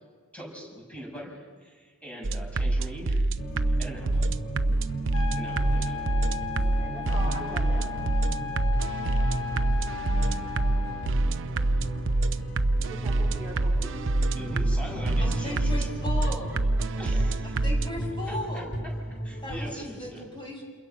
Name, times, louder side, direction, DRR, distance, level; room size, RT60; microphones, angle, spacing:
voice 1, 0.3-3.3 3.8-4.3 5.4-6.1 6.6-6.8 14.3-15.9 17.0-17.6 18.3-18.6 19.2-20.2, equal, 5° left, -1 dB, 6.6 m, -41 dB
sound 1, 2.2-17.9, right 2 dB, 55° right, 0.8 m, -26 dB
sound 2, 3.4-19.8, right 1 dB, 50° left, 3.1 m, -36 dB
sound 3, 5.1-11.1, left 10 dB, 70° left, 1.5 m, -36 dB
voice 2, 6.6-7.9 12.8-14.3 16.2-16.8, right 1 dB, 10° right, -4 dB, 3.5 m, -42 dB
voice 3, 15.2-16.6 17.4-18.7 19.4-20.6, left 1 dB, 20° left, 0 dB, 5.7 m, -36 dB
29.0 x 28.5 x 5.6 m, 1.5 s
head